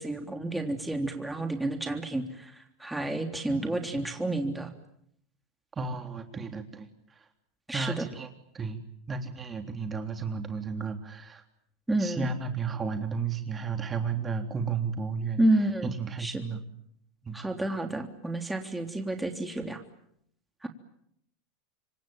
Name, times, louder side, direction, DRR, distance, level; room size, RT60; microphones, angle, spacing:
voice 1, 0.0-2.5 2.8-4.7 7.7-8.1 11.9-12.3 15.4-15.9 16.2-16.4 17.3-19.8 20.6-20.7, right 1 dB, 5° right, 4 dB, 3.5 m, -30 dB
voice 2, 5.8-6.9 7.7-8.3 8.5-8.8 9.1-11.4 12.0-15.4 16.0-16.6 17.2-17.3, right 5 dB, 25° right, 6 dB, 3.4 m, -33 dB
27.5 x 24.5 x 8.9 m, 0.71 s
hypercardioid pair, 95°, 0 cm